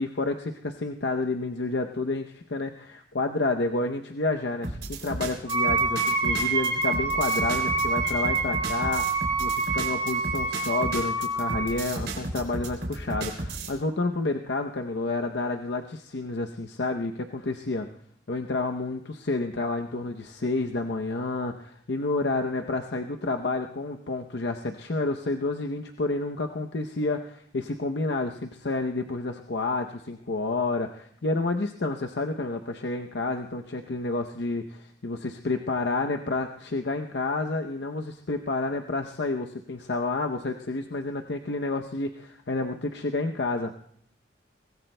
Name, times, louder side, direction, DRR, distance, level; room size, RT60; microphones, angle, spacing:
voice 1, 0.0-9.0 9.4-17.9 18.3-43.8, left 3 dB, 75° left, 4 dB, 0.7 m, -30 dB
sound 1, 4.6-13.7, right 2 dB, 75° right, 3.0 m, -34 dB
Wind instrument woodwind instrument, 5.5-11.8, right 3 dB, 30° right, 3.8 m, -27 dB
23.5 x 18.0 x 2.2 m, 0.66 s
head